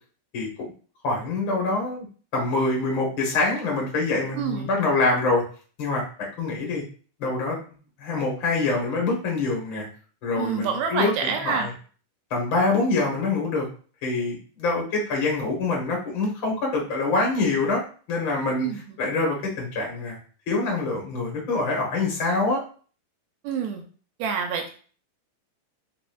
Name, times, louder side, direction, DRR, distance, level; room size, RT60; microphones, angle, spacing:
voice 1, 1.0-2.1 2.3-5.4 5.8-6.8 7.2-7.6 8.0-9.9 10.2-11.7 12.3-13.7 14.0-17.8 18.1-18.7 19.0-20.2 20.5-22.6, left 3 dB, 50° left, -2 dB, 1.5 m, -25 dB
voice 2, 4.4-4.7 10.4-11.7 18.6-19.0 23.4-23.8 24.2-24.7, right 6 dB, 80° right, 3 dB, 1.8 m, -27 dB
4.2 x 4.0 x 2.3 m, 0.41 s
omnidirectional pair, 3.6 m